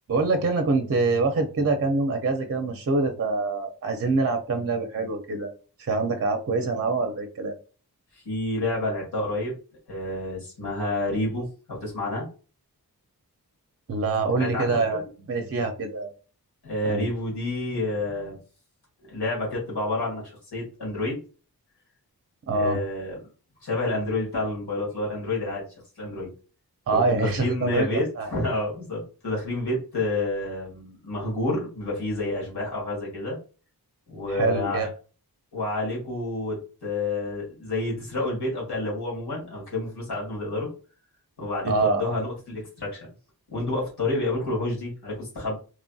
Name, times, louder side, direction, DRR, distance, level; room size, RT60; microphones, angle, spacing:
voice 1, 0.1-5.5 5.8-7.5 13.9-15.0 15.3-16.1 16.8-17.1 22.5-22.8 26.9-28.3 34.3-34.9 41.7-42.1, right 3 dB, 40° right, 6 dB, 0.5 m, -25 dB
voice 2, 8.1-9.5 9.9-12.3 14.4-15.0 16.6-18.4 19.1-21.2 22.5-23.2 23.6-25.6 26.0-26.3 26.9-33.4 34.1-34.9 35.5-40.7 41.4-43.1 43.5-45.6, left 2 dB, 90° left, -4 dB, 1.5 m, -29 dB
3.1 x 2.6 x 2.3 m, 0.37 s
wide cardioid pair, 70°, 38 cm